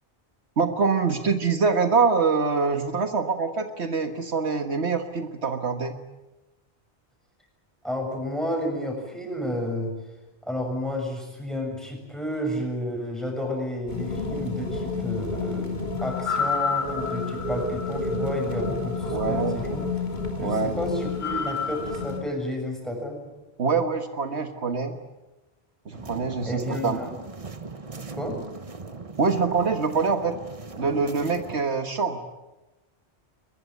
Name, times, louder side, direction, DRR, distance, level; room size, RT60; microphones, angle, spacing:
voice 1, 0.6-6.0 19.1-19.6 20.4-20.8 23.6-25.0 25.9-27.0 29.2-30.4 30.8-32.2, right 4 dB, 75° right, 6 dB, 1.8 m, -24 dB
voice 2, 7.8-9.9 10.4-19.8 20.4-23.3 26.4-27.2 28.1-28.4, equal, ahead, 2 dB, 7.1 m, -31 dB
sound 1, 13.9-22.2, left 4 dB, 40° left, 3.2 m, -29 dB
sound 2, 25.9-31.6, right 3 dB, 30° right, 1.3 m, -39 dB
22.5 x 21.5 x 9.6 m, 1.0 s
omnidirectional pair, 1.1 m